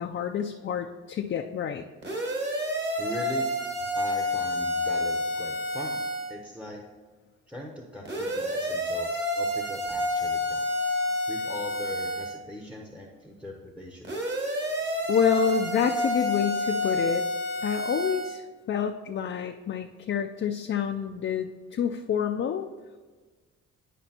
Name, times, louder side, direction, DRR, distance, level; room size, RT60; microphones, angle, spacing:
voice 1, 0.0-1.8 15.1-17.3 17.6-22.7, left 7 dB, 40° left, 4 dB, 0.5 m, -28 dB
sound 1, 2.0-6.3 8.0-12.4 14.0-18.4, left 1 dB, 35° right, 1.7 m, -29 dB
voice 2, 3.0-3.5 3.9-6.0 6.3-6.8 7.5-10.7 11.3-14.4, left 1 dB, 5° right, 1 dB, 0.9 m, -40 dB
11.0 x 5.1 x 2.9 m, 1.4 s
cardioid pair, 90°, 30 cm